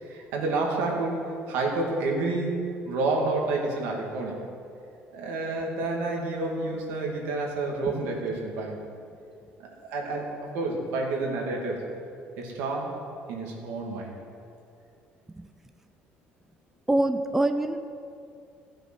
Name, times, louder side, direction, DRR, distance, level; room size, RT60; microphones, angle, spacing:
voice 1, 0.0-4.4 5.1-8.8 9.6-11.8 12.4-12.9 13.3-14.1, right 3 dB, 90° right, -1 dB, 2.4 m, -29 dB
voice 2, 16.9-17.8, right 1 dB, 10° right, 8 dB, 0.5 m, -25 dB
14.5 x 7.8 x 6.3 m, 2.4 s
cardioid pair, 125°, 4 cm